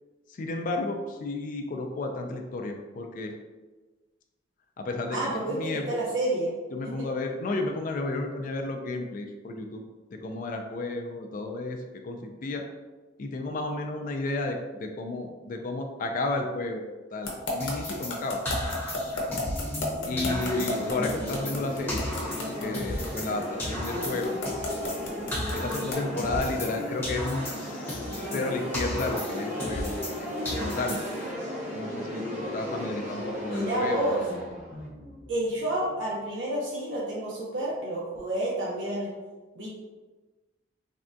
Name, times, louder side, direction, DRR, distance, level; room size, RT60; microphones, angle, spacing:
voice 1, 0.3-3.3 4.8-6.0 6.7-9.8 10.1-12.6 13.2-16.8 17.1-18.4 20.1-22.0 22.6-24.3 25.5-31.0 31.7-34.1, left 2 dB, 45° left, 3 dB, 0.3 m, -32 dB
voice 2, 5.1-6.5 6.8-7.1 33.4-34.2 35.3-39.1 39.5-39.7, right 1 dB, 80° right, -5 dB, 0.6 m, -29 dB
sound 1, 17.3-26.1, left 2 dB, 80° left, 0.7 m, -32 dB
sound 2, 17.6-19.9 20.2-23.3 23.6-26.8 27.0-30.2 30.4-31.3, left 1 dB, 10° left, 0.7 m, -35 dB
sound 3, 18.4-36.1, left 1 dB, 35° right, 0.7 m, -36 dB
3.4 x 2.2 x 2.5 m, 1.2 s
head